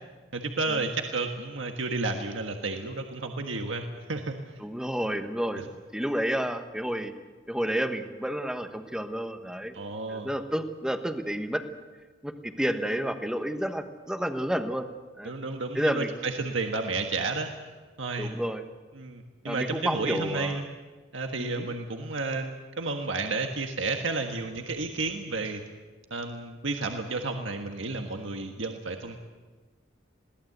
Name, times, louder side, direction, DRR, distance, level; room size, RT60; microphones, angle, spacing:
voice 1, 0.3-4.4 9.7-10.3 15.2-17.5 18.0-18.3 18.9-20.6 21.1-25.6 26.1-29.2, right 3 dB, 80° right, 4 dB, 1.5 m, -31 dB
voice 2, 4.6-5.6 5.9-7.1 7.5-9.7 10.1-11.6 12.2-14.9 15.2-15.3 15.7-16.1 18.2-18.6 19.4-20.7 21.4-21.7, equal, 5° right, 7 dB, 1.2 m, -30 dB
22.0 x 17.5 x 8.0 m, 1.3 s
head